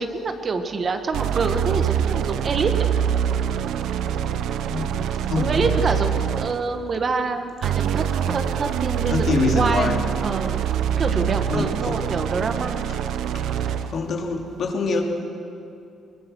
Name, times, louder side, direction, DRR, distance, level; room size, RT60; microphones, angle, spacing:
voice 1, 0.0-2.9 5.4-10.0 10.2-10.6 11.0-12.9, right 4 dB, 45° right, 7 dB, 1.6 m, -26 dB
sound 1, 1.1-6.7 7.6-14.0, right 9 dB, 80° right, 0.8 m, -24 dB
voice 2, 4.7-5.7 9.1-10.0 11.5-12.0 13.9-15.0, left 4 dB, 60° left, 1 dB, 2.8 m, -25 dB
22.0 x 19.5 x 6.3 m, 2.6 s
cardioid pair, 90°, 0 cm